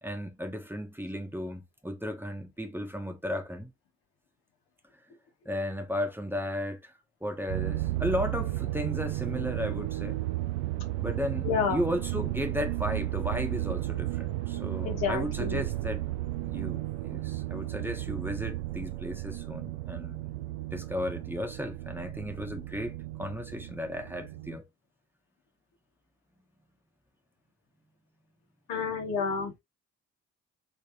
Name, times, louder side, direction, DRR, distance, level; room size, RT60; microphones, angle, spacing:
voice 1, 0.0-3.7 5.4-6.9 7.2-10.2 11.0-16.0 16.4-20.2 20.7-24.7, left 1 dB, 5° right, 1.2 m, -35 dB
sound 1, 7.5-24.6, right 16 dB, 80° right, 0.6 m, -34 dB
voice 2, 11.4-11.8 14.8-15.6 28.7-29.6, left 6 dB, 70° left, 1.3 m, -30 dB
3.5 x 3.5 x 2.8 m
figure-of-eight pair, 40°, 37 cm